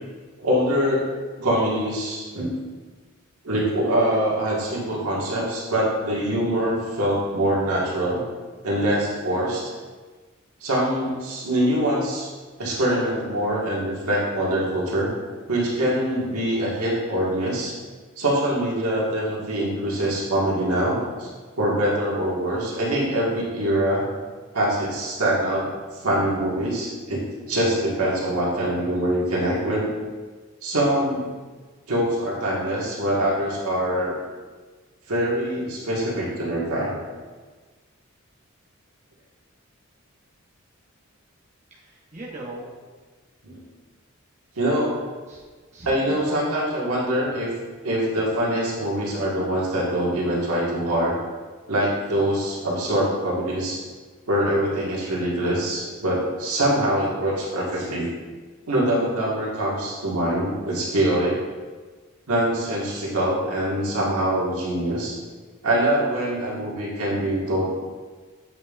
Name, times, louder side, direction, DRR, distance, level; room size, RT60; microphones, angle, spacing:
voice 1, 0.4-1.1 1.4-2.5 3.4-8.2 8.6-9.7 10.6-12.3 12.6-15.1 15.5-17.8 18.2-21.3 21.6-24.1 24.5-25.7 26.0-29.9 30.6-31.3 31.9-34.2 35.1-37.0 43.4-43.6 44.6-45.0 45.9-47.5 47.8-51.2 51.7-53.8 54.3-58.1 58.7-61.4 62.3-65.2 65.6-67.7, right 1 dB, 85° right, -5 dB, 1.7 m, -24 dB
voice 2, 41.7-42.7 45.3-45.4 45.7-46.7, right 1 dB, 30° right, -6 dB, 0.9 m, -38 dB
7.8 x 5.3 x 2.4 m, 1.4 s
head